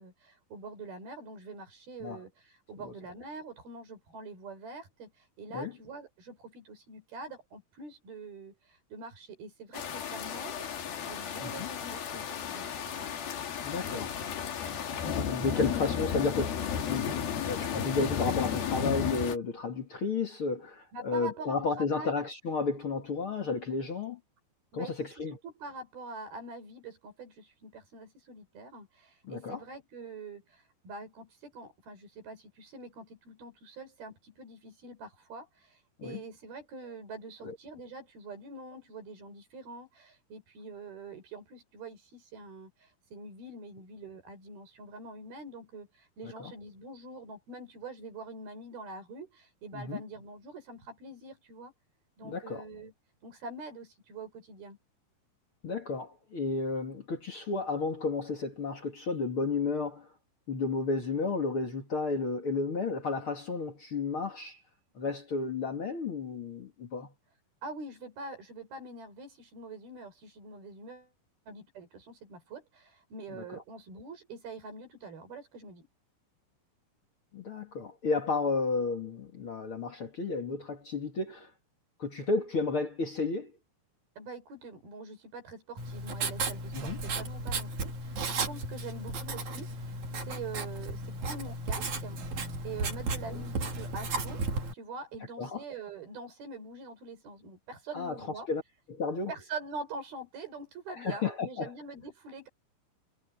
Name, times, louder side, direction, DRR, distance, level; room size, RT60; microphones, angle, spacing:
voice 1, 0.0-10.7 11.1-13.2 15.5-15.8 20.9-22.1 24.7-51.7 52.2-52.9 53.2-54.8 67.6-71.1 71.5-75.9 84.2-92.2 92.6-94.4 94.7-98.5 99.3-102.5, right 3 dB, 80° right, 7.3 m, -45 dB
sound 1, 9.7-19.4, left 8 dB, 75° left, 4.3 m, -33 dB
voice 2, 13.6-14.1 15.3-24.2 24.7-25.4 29.2-29.6 36.0-36.2 37.4-37.6 46.2-46.5 49.7-50.0 52.2-52.6 55.6-60.1 60.5-64.6 64.9-67.1 73.3-73.4 77.3-81.5 82.0-83.5 86.7-87.0 95.4-95.6 97.9-98.2 98.5-98.6 98.9-99.3 101.0-101.7, left 4 dB, 40° left, 2.5 m, -32 dB
Writing, 85.8-94.7, right 3 dB, 55° right, 4.2 m, -34 dB
omnidirectional pair, 4.3 m